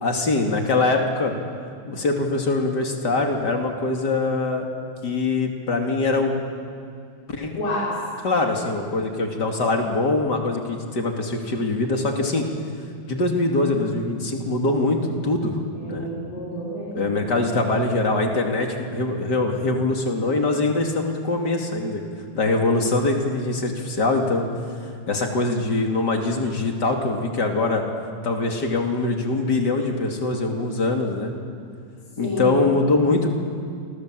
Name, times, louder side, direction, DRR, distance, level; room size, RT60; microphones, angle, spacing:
voice 1, 0.0-1.3 1.9-4.7 5.0-6.4 7.3-7.5 8.2-12.5 13.1-16.1 16.9-22.0 22.3-24.5 25.1-27.8 28.2-31.3 32.2-33.3, left 2 dB, 30° left, 2 dB, 2.7 m, -23 dB
voice 2, 7.5-8.0 15.7-17.1 32.2-32.7, equal, 70° left, -8 dB, 8.2 m, -29 dB
29.0 x 26.5 x 7.7 m, 2.4 s
omnidirectional pair, 4.2 m